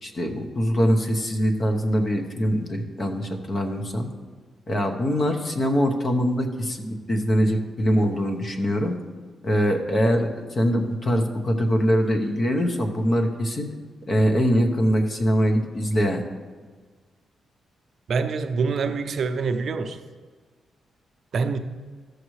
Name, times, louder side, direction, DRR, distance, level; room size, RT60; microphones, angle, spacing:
voice 1, 0.0-4.1 4.7-9.0 9.4-13.7 14.1-16.2, equal, 40° left, 4 dB, 1.0 m, -23 dB
voice 2, 18.1-20.0 21.3-21.6, right 4 dB, 60° right, 7 dB, 0.5 m, -25 dB
13.5 x 6.4 x 3.2 m, 1.5 s
cardioid pair, 115°, 0 cm